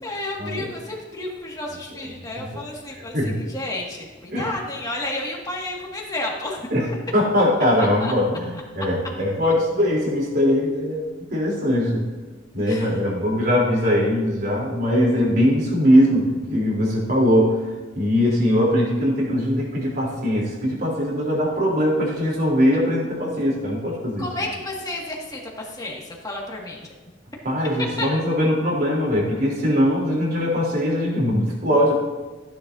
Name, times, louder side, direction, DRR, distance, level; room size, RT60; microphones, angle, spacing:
voice 1, 0.0-6.6 7.8-8.1 12.7-13.0 24.2-26.9 28.0-28.1, left 2 dB, 20° left, -2 dB, 2.2 m, -31 dB
voice 2, 7.1-11.0 11.3-12.0 12.5-17.6 17.9-24.2 27.4-31.9, equal, 55° right, -4 dB, 3.8 m, -21 dB
15.5 x 10.0 x 2.8 m, 1.3 s
head